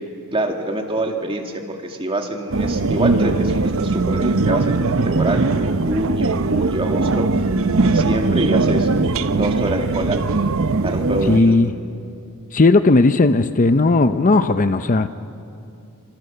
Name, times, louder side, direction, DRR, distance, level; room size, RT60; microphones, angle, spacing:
voice 1, 0.3-7.3 7.8-8.9 9.3-10.2 10.8-11.6, right 1 dB, 25° right, 3 dB, 2.2 m, -25 dB
sound 1, 2.5-11.4, right 3 dB, 65° right, 0.8 m, -20 dB
voice 2, 11.3-11.7 12.5-15.1, left 3 dB, 35° left, 10 dB, 0.6 m, -15 dB
28.0 x 26.5 x 6.8 m, 2.6 s
head